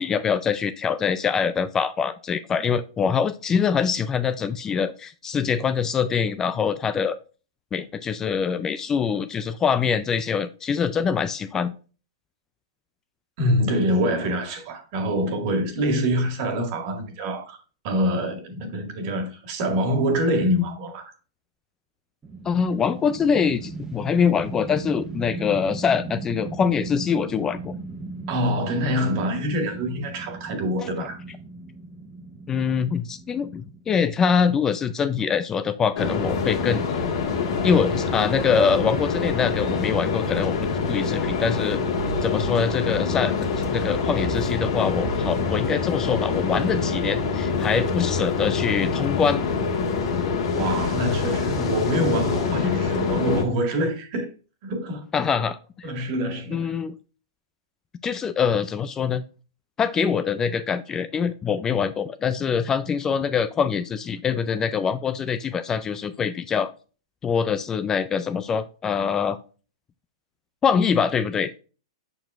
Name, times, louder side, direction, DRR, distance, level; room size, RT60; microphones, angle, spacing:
voice 1, 0.0-7.2 7.7-11.7 22.5-27.8 32.5-36.8 37.6-40.5 40.9-41.8 42.2-49.4 55.1-55.9 56.5-56.9 58.0-59.2 59.8-66.7 67.2-69.4 70.6-71.5, left 6 dB, 20° left, 0.3 m, -24 dB
voice 2, 13.4-21.0 28.3-31.2 50.5-54.3 54.6-55.1 55.8-56.8, equal, 50° right, 1.9 m, -25 dB
sound 1, 22.2-34.4, right 3 dB, 20° right, 0.8 m, -37 dB
sound 2, 36.0-53.4, left 5 dB, 60° left, 1.5 m, -25 dB
6.8 x 6.0 x 2.4 m
hypercardioid pair, 125°, 3 cm